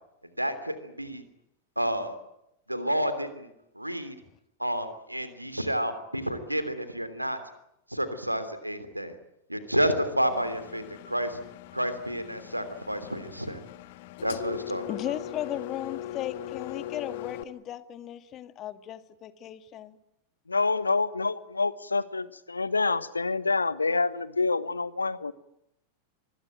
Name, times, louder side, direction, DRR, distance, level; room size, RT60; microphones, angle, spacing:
voice 1, 0.4-1.2 1.8-2.2 2.7-3.5 3.7-4.1 4.6-7.4 7.9-9.1 9.5-11.4 11.7-13.6 14.2-14.8, equal, 90° right, 11 dB, 3.1 m, -30 dB
Engine, 10.3-17.4, left 13 dB, 50° left, 1.8 m, -40 dB
voice 2, 14.9-20.0, left 11 dB, 30° left, 12 dB, 2.0 m, -36 dB
voice 3, 20.5-25.3, left 3 dB, 80° left, 17 dB, 1.3 m, -27 dB
25.5 x 21.5 x 9.1 m, 0.81 s
figure-of-eight pair, 90°, 0 cm